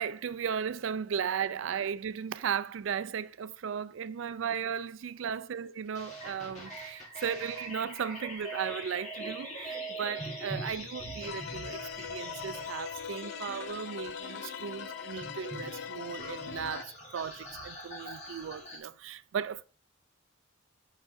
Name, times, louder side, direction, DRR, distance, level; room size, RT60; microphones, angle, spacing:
voice 1, 0.0-19.6, right 7 dB, 65° right, 0.4 m, -36 dB
sound 1, 5.9-18.8, right 1 dB, 35° left, 1.8 m, -43 dB
sound 2, 11.2-16.8, left 8 dB, 55° left, 0.3 m, -41 dB
7.8 x 5.8 x 2.6 m
head